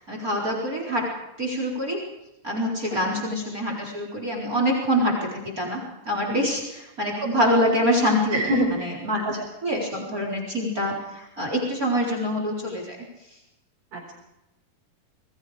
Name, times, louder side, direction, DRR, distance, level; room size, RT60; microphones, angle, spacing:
voice 1, 0.1-1.0 1.4-2.0 2.4-5.1 5.4-9.3 9.6-13.0, equal, 25° right, 1 dB, 4.4 m, -25 dB
voice 2, 8.3-9.2 13.9-14.1, right 1 dB, 45° right, -4 dB, 5.2 m, -27 dB
27.5 x 21.0 x 5.0 m, 0.92 s
omnidirectional pair, 4.1 m